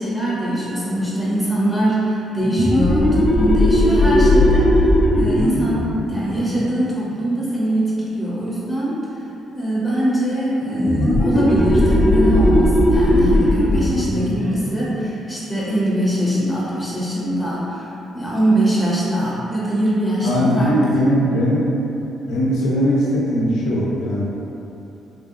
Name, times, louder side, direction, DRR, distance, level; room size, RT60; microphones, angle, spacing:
voice 1, 0.0-4.9 5.1-9.0 9.5-17.9 18.1-20.8, right 1 dB, 5° left, -8 dB, 0.9 m, -22 dB
sound 1, 2.4-7.7 10.8-16.1, left 1 dB, 25° left, 0.4 m, -18 dB
voice 2, 20.2-21.6 22.3-24.2, equal, 85° left, -6 dB, 0.6 m, -19 dB
3.1 x 2.5 x 2.5 m, 2.9 s
cardioid pair, 90°, 0 cm